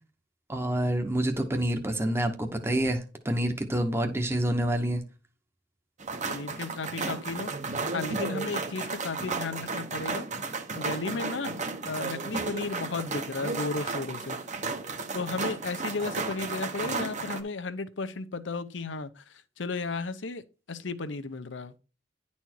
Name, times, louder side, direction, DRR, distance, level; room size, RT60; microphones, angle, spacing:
voice 1, 0.5-5.0, right 1 dB, 15° right, 1.0 m, -27 dB
sound 1, 6.0-17.4, right 4 dB, 40° right, 1.0 m, -33 dB
voice 2, 6.3-10.3 10.8-14.4 15.1-21.7, left 3 dB, 70° left, 0.7 m, -34 dB
10.5 x 4.3 x 4.5 m
head